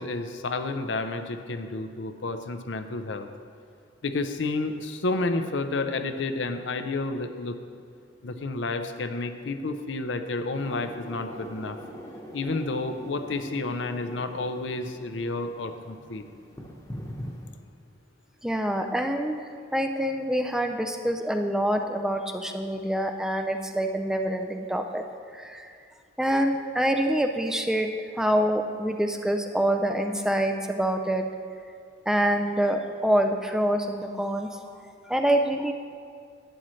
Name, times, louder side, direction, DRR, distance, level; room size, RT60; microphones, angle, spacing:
voice 1, 0.0-3.3 4.0-7.5 8.2-11.8 12.3-16.2, left 3 dB, 75° left, 7 dB, 0.6 m, -30 dB
sound 1, 10.5-17.5, equal, 15° left, 1.0 m, -42 dB
voice 2, 18.4-25.0 25.3-25.7 26.2-27.9 28.2-31.3 32.1-35.7, right 1 dB, 5° right, 4 dB, 0.4 m, -26 dB
11.5 x 8.8 x 3.2 m, 2.2 s
head